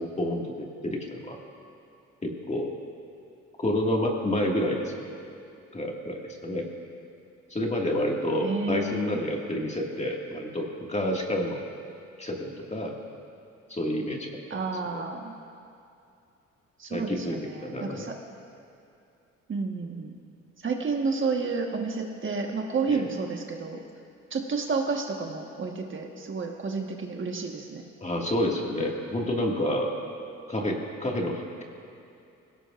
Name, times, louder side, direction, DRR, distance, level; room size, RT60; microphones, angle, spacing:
voice 1, 0.0-1.4 2.2-2.7 3.6-5.1 5.7-6.7 7.5-11.6 12.2-13.0 13.7-14.6 14.9-15.0 16.9-18.1 22.9-23.1 28.0-29.9 30.5-31.6, left 1 dB, 20° left, 0 dB, 2.0 m, -29 dB
voice 2, 8.4-9.2 14.5-15.3 16.8-18.1 19.5-20.1 20.6-23.8 24.3-27.8, right 4 dB, 40° right, 2 dB, 1.4 m, -30 dB
20.5 x 17.0 x 2.5 m, 2.6 s
cardioid pair, 90°, 30 cm